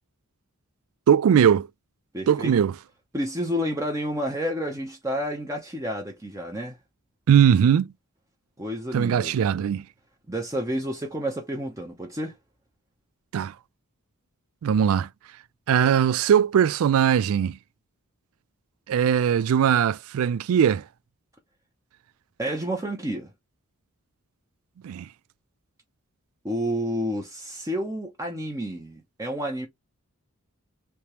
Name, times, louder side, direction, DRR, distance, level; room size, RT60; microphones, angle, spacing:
voice 1, 1.1-1.7 2.3-2.7 7.3-7.9 8.9-9.8 13.3-13.5 14.6-15.1 15.7-17.6 18.9-20.8 24.8-25.1, right 8 dB, 65° right, 0.3 m, -20 dB
voice 2, 2.1-2.5 3.1-6.8 8.6-9.3 10.3-12.3 22.4-23.3 26.4-29.7, equal, 15° right, 0.7 m, -30 dB
3.3 x 2.8 x 2.9 m
head